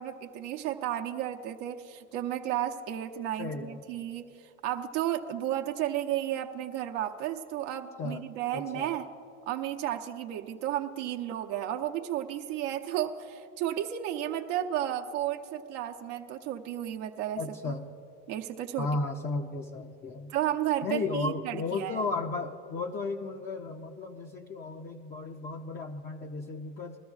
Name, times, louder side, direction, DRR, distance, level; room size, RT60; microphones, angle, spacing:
voice 1, 0.0-4.3 4.6-9.1 9.5-17.7 18.3-18.9 20.3-22.0, right 11 dB, 75° right, 3 dB, 0.8 m, -33 dB
voice 2, 3.4-3.8 8.0-8.2 8.5-8.9 17.4-17.9 18.8-20.3 20.8-27.0, left 3 dB, 25° left, 3 dB, 0.6 m, -34 dB
21.5 x 13.0 x 2.4 m, 2.6 s
supercardioid pair, 110°, 37 cm